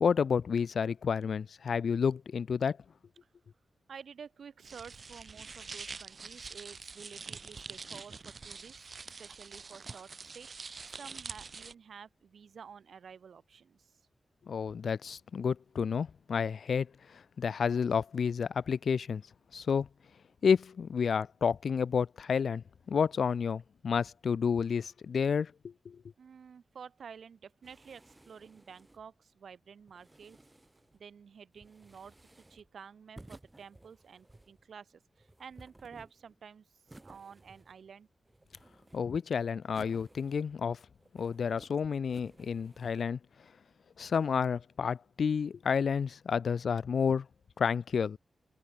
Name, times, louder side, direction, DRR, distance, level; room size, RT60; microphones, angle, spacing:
voice 1, 0.0-2.8 14.5-19.2 19.5-19.9 20.4-26.0 38.9-40.8 41.1-43.2 44.0-47.3 47.6-48.2, left 6 dB, 70° left, 0.4 m, -30 dB
voice 2, 3.9-10.5 10.9-13.9 26.2-30.4 30.9-38.1, right 6 dB, 75° right, 1.7 m, -51 dB
sound 1, 4.6-11.7, right 4 dB, 45° right, 0.9 m, -45 dB
sound 2, 27.6-29.1 29.9-31.0 31.5-32.7 33.2-34.6 35.2-36.4 36.9-37.9 38.3-39.2 39.7-40.7 41.0-41.7 42.1-43.0, right 2 dB, 15° right, 1.8 m, -57 dB
wide cardioid pair, 110°, 0 cm